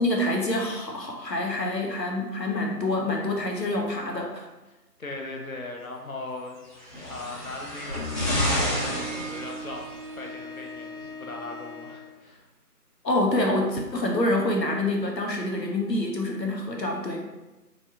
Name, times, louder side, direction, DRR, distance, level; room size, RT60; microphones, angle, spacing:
voice 1, 0.0-4.5 13.0-17.3, left 1 dB, 85° left, 1 dB, 1.0 m, -26 dB
voice 2, 4.6-6.8 7.1-12.5, left 2 dB, 55° left, 1 dB, 0.8 m, -39 dB
sound 1, 6.7-10.1 11.0-11.1, left 1 dB, 30° left, 1.4 m, -29 dB
Bowed string instrument, 7.8-12.2, equal, 50° right, 0.6 m, -40 dB
4.6 x 2.7 x 2.7 m, 1.1 s
figure-of-eight pair, 170°, 49 cm